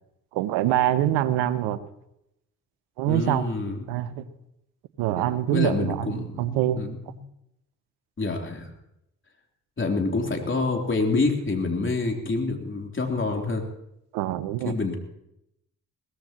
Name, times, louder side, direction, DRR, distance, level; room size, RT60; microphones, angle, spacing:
voice 1, 0.3-1.8 3.0-3.5 3.9-4.3 5.0-6.8 14.1-14.7, right 13 dB, 75° right, 15 dB, 0.9 m, -25 dB
voice 2, 3.1-3.8 5.1-5.2 5.5-7.2 8.2-8.7 9.8-13.6 14.6-15.0, left 3 dB, 30° left, 2 dB, 3.5 m, -27 dB
22.0 x 17.5 x 3.0 m, 0.81 s
hypercardioid pair, 40°, 39 cm